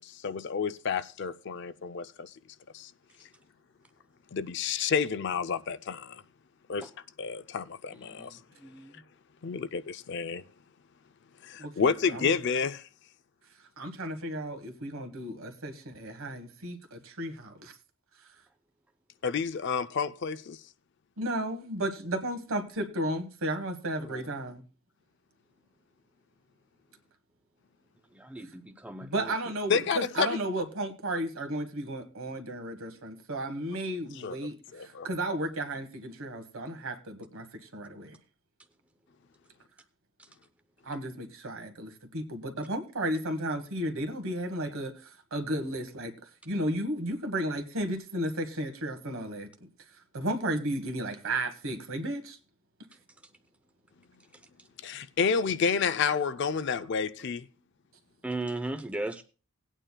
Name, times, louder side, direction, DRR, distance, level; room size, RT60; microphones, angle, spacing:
voice 1, 0.0-2.3 2.7-2.9 4.3-6.2 6.7-6.9 7.2-8.4 9.4-10.4 11.4-12.8 19.2-20.6 24.1-24.2 29.7-30.4 34.2-34.4 34.7-35.1 54.8-57.5, left 6 dB, 50° left, 0.4 m, -30 dB
voice 2, 8.0-8.4 8.6-8.9 28.1-29.3 58.2-59.2, right 2 dB, 5° right, 0.5 m, -36 dB
voice 3, 11.6-12.4 13.8-17.7 21.2-24.6 29.0-38.2 40.8-49.7 50.1-52.4 57.2-57.3, right 1 dB, 65° right, 1.4 m, -34 dB
18.5 x 8.9 x 2.2 m
head